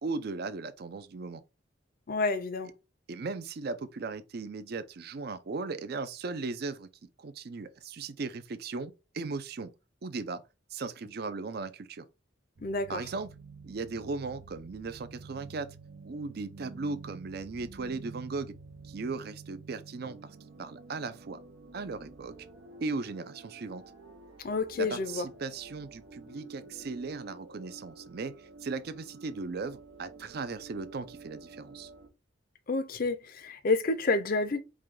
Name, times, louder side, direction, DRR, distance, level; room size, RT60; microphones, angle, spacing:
voice 1, 0.0-1.4 3.1-6.9 7.2-9.7 10.0-10.4 10.7-12.1 12.9-13.3 13.6-15.8 16.0-18.6 18.8-20.2 20.6-21.4 21.7-22.3 22.8-23.8 24.8-28.3 28.6-31.9, right 3 dB, 55° right, 0.5 m, -37 dB
voice 2, 2.1-2.7 12.6-13.0 24.4-25.3 32.7-34.6, left 3 dB, 50° left, 0.5 m, -29 dB
sound 1, 12.6-32.1, right 3 dB, 85° right, 0.8 m, -50 dB
4.8 x 2.2 x 3.7 m
head